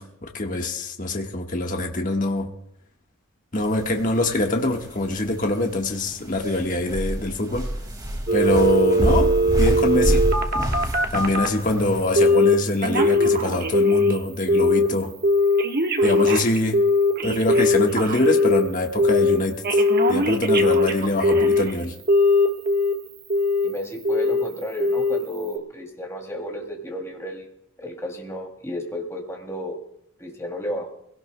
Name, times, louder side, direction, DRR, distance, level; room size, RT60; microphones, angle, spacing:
voice 1, 0.0-2.5 3.5-7.7 8.3-10.3 11.1-15.1 16.0-16.8 17.2-19.8 20.1-21.9, left 2 dB, 40° left, 1.4 m, -24 dB
sound 1, 3.6-12.0, equal, 20° right, 2.0 m, -27 dB
Telephone, 8.3-11.6 12.2-12.5 12.8-14.2 14.5-14.9 15.2-18.6 19.0-19.4 19.6-21.7 22.1-22.9 23.3-23.7 24.0-24.4 24.8-25.2 25.5-25.6, left 1 dB, 45° right, 1.3 m, -19 dB
voice 2, 23.6-27.5 27.8-29.8 30.2-30.9, equal, 15° left, 2.6 m, -32 dB
24.5 x 17.5 x 2.2 m
head